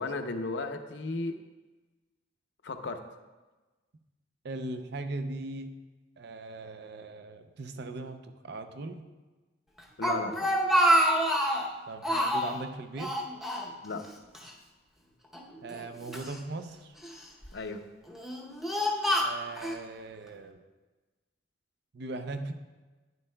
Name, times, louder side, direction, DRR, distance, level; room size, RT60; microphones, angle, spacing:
voice 1, 0.0-1.3 2.6-3.0 10.0-10.5 13.8-14.0 17.5-17.9, left 3 dB, 60° left, 6 dB, 0.7 m, -34 dB
voice 2, 4.4-5.7 6.2-9.0 11.9-13.1 15.6-16.9 19.2-20.6 21.9-22.5, right 2 dB, 60° right, 8 dB, 0.5 m, -39 dB
Speech, 9.8-11.7 12.0-12.6 13.0-14.1 14.3-14.5 15.3-16.3 17.0-17.5 18.1-19.8, equal, ahead, 0.7 m, -27 dB
11.0 x 9.8 x 2.2 m, 1.2 s
head